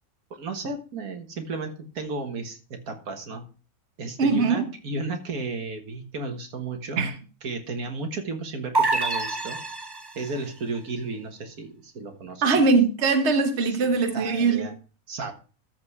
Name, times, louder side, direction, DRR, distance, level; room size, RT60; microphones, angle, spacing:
voice 1, 0.4-3.5 4.0-7.1 7.4-9.6 10.2-12.4 13.8-14.7 15.1-15.3, right 3 dB, 85° right, 1.9 m, -34 dB
voice 2, 4.2-4.7 7.0-7.1 12.4-14.7, right 4 dB, 50° right, 1.5 m, -21 dB
sound 1, 8.7-10.4, right 3 dB, 25° right, 0.6 m, -26 dB
13.5 x 4.8 x 4.7 m
omnidirectional pair, 1.5 m